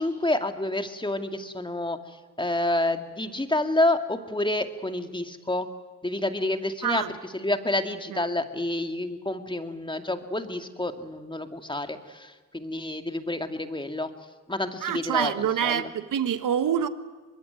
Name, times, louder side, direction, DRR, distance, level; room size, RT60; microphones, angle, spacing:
voice 1, 0.0-2.0 2.4-5.7 6.0-7.0 7.3-14.1 14.5-15.9, left 1 dB, 15° left, 2.4 m, -28 dB
voice 2, 14.8-16.9, right 9 dB, 75° right, 1.5 m, -26 dB
24.5 x 21.5 x 9.2 m
cardioid pair, 65°, 32 cm